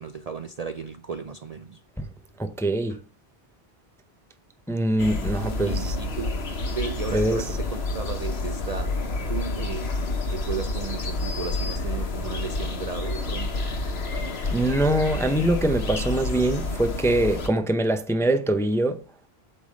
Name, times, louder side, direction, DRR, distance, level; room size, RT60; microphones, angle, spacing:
voice 1, 0.0-1.8 5.7-6.4 6.7-9.0 9.3-13.6, right 6 dB, 50° right, 0.5 m, -35 dB
voice 2, 2.4-3.0 4.7-6.0 7.1-7.5 14.5-19.0, right 1 dB, 5° left, 0.4 m, -23 dB
sound 1, 5.0-17.5, left 2 dB, 65° left, 1.4 m, -29 dB
8.5 x 3.5 x 6.3 m
omnidirectional pair, 1.1 m